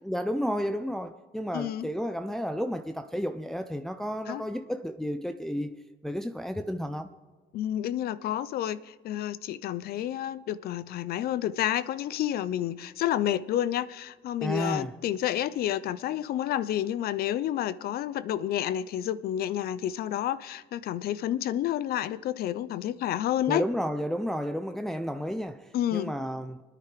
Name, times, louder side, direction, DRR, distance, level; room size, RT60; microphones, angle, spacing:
voice 1, 0.0-7.1 14.4-14.9 23.5-26.6, equal, ahead, 0.5 m, -32 dB
voice 2, 1.5-1.9 4.3-4.4 7.5-23.6 25.7-26.1, left 12 dB, 65° left, 0.6 m, -30 dB
26.5 x 10.0 x 3.3 m
cardioid pair, 110°, 17 cm